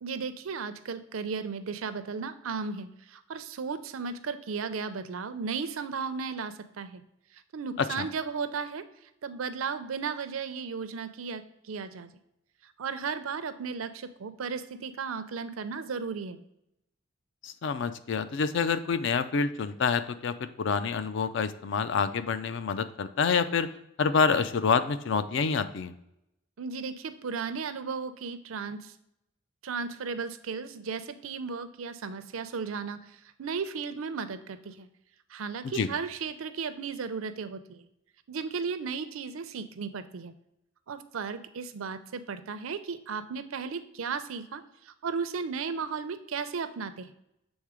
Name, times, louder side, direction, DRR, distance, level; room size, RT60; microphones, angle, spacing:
voice 1, 0.0-7.0 7.3-8.8 9.2-12.1 12.6-16.4 26.6-28.9 29.6-34.9 35.3-37.9 38.3-40.3 40.9-47.1, right 5 dB, 90° right, 11 dB, 0.5 m, -35 dB
voice 2, 17.4-23.7 24.0-25.9 35.6-35.9, left 5 dB, 60° left, 12 dB, 0.4 m, -27 dB
7.1 x 3.6 x 4.8 m, 0.83 s
head